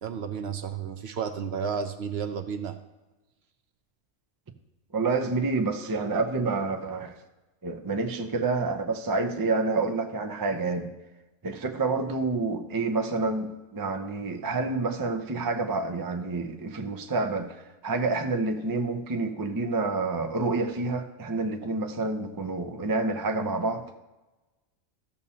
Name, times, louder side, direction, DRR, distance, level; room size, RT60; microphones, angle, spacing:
voice 1, 0.0-2.8, right 6 dB, 65° right, 8 dB, 0.7 m, -32 dB
voice 2, 4.9-7.2 7.6-10.9 11.4-24.0, right 3 dB, 35° right, 6 dB, 0.3 m, -28 dB
14.0 x 7.0 x 2.8 m, 1.1 s
omnidirectional pair, 1.4 m